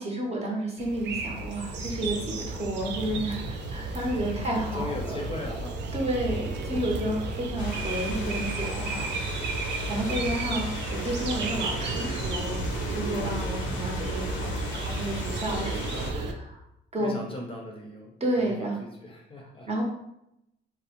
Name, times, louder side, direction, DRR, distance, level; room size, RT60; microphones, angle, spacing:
voice 1, 0.0-3.4 3.7-5.2 5.9-9.4 9.9-10.7 11.0-12.6 12.9-16.6 16.9-17.2 18.2-18.8 19.7-19.8, right 1 dB, 30° right, -1 dB, 0.7 m, -31 dB
sound 1, 0.8-16.3, right 3 dB, 65° right, 0.4 m, -32 dB
voice 2, 4.0-6.1 6.9-7.5 10.2-10.6 13.6-13.9 17.0-19.7, left 2 dB, 25° left, -1 dB, 0.5 m, -40 dB
sound 2, 7.6-16.1, left 4 dB, 90° left, 0.5 m, -39 dB
2.5 x 2.0 x 2.9 m, 0.83 s
cardioid pair, 90°, 20 cm